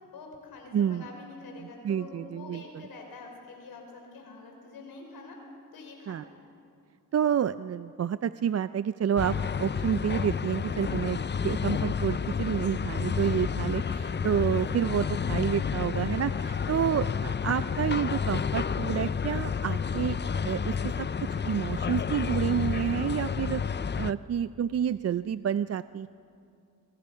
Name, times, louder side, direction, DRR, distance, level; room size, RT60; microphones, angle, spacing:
voice 1, 0.1-5.4 5.7-6.3 16.6-16.8, left 3 dB, 85° left, 1 dB, 5.3 m, -46 dB
voice 2, 0.7-1.1 1.8-2.6 6.1-6.2 7.1-11.2 11.4-23.6 24.0-26.1, right 8 dB, 45° right, 14 dB, 0.5 m, -29 dB
sound 1, 9.2-24.1, left 6 dB, 30° left, 0.6 m, -30 dB
25.5 x 24.5 x 5.7 m, 2.5 s
cardioid pair, 75°, 35 cm